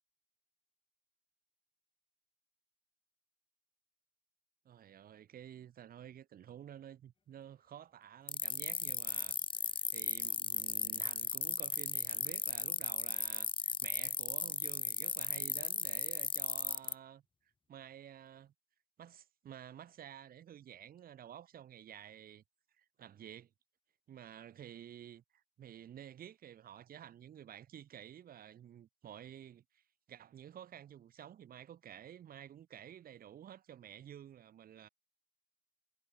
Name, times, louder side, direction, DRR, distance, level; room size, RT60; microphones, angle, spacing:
voice 1, 4.6-9.4 9.6-17.2 17.7-18.5 19.0-22.4 22.8-23.5 24.1-34.9, right 10 dB, 50° right, 4.1 m, -52 dB
sound 1, 8.3-16.9, left 5 dB, 25° left, 1.6 m, -36 dB
hypercardioid pair, 60°, 19 cm